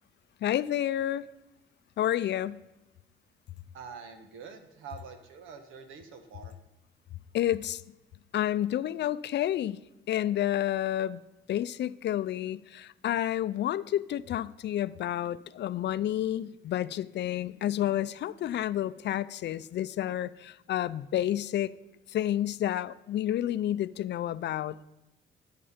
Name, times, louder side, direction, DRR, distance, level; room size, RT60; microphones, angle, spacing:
voice 1, 0.4-1.3 2.0-2.6 7.3-7.8 8.3-9.8 10.1-11.2 11.5-21.7 22.1-24.8, left 12 dB, 60° left, 16 dB, 0.5 m, -30 dB
voice 2, 3.7-6.5, right 6 dB, 85° right, 7 dB, 1.3 m, -46 dB
11.0 x 6.6 x 5.1 m, 0.98 s
cardioid pair, 90°, 20 cm